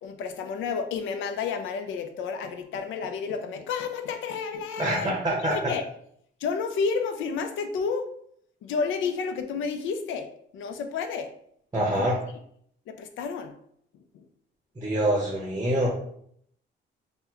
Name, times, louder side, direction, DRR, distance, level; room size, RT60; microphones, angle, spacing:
voice 1, 0.0-5.1 5.4-5.8 6.4-8.1 8.6-11.3 12.0-12.1 12.9-13.5 14.1-14.2, left 5 dB, 80° left, 7 dB, 0.5 m, -31 dB
voice 2, 4.8-5.7 11.7-12.2 14.8-15.9, right 1 dB, 20° right, -2 dB, 0.7 m, -25 dB
2.8 x 2.1 x 3.5 m, 0.68 s
cardioid pair, 90°, 20 cm